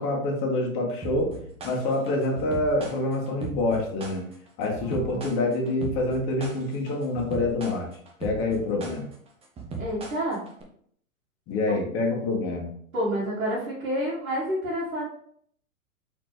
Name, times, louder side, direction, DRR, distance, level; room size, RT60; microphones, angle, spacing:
voice 1, 0.0-1.3 1.6-4.2 4.6-7.9 8.2-9.1 11.5-12.7, left 2 dB, 30° left, 0 dB, 1.4 m, -26 dB
sound 1, 1.0-10.6, right 3 dB, 15° right, 0.8 m, -38 dB
voice 2, 9.8-10.4 12.9-15.0, equal, 75° right, -6 dB, 1.8 m, -29 dB
4.2 x 4.0 x 3.1 m, 0.63 s
hypercardioid pair, 115°, 41 cm